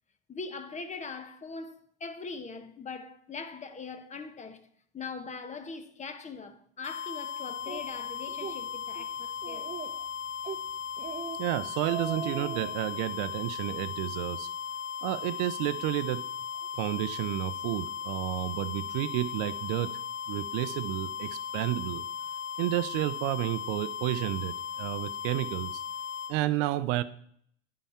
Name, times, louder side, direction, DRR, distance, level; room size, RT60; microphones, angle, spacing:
voice 1, 0.3-4.7 4.9-9.7, left 4 dB, 25° left, 0.9 m, -41 dB
sound 1, 6.8-26.3, left 8 dB, 75° left, 1.7 m, -37 dB
Speech, 7.7-7.8 8.3-8.6 8.9-9.0 9.4-10.0 10.4-10.6 11.0-11.4 11.7-12.7, right 6 dB, 25° right, 0.8 m, -38 dB
voice 2, 11.4-14.5 15.0-16.2 16.8-20.0 20.3-22.0 22.6-25.8 26.3-27.0, right 15 dB, 65° right, 0.6 m, -31 dB
9.6 x 5.7 x 4.3 m
hypercardioid pair, 95°, 30 cm